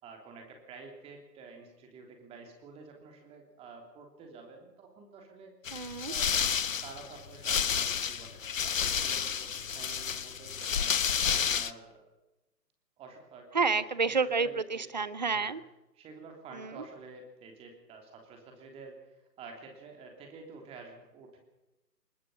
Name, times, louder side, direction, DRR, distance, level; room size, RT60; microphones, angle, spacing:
voice 1, 0.0-5.5 6.1-6.3 6.8-11.0 11.4-12.0 13.0-14.9 15.3-15.5 15.9-21.4, right 4 dB, 10° right, 3 dB, 3.2 m, -50 dB
sound 1, 5.7-11.7, left 7 dB, 50° left, 1.1 m, -30 dB
voice 2, 5.7-6.1 13.5-15.6, right 4 dB, 25° right, 17 dB, 0.7 m, -29 dB
23.0 x 21.0 x 5.6 m, 0.99 s
figure-of-eight pair, 145°, 50 cm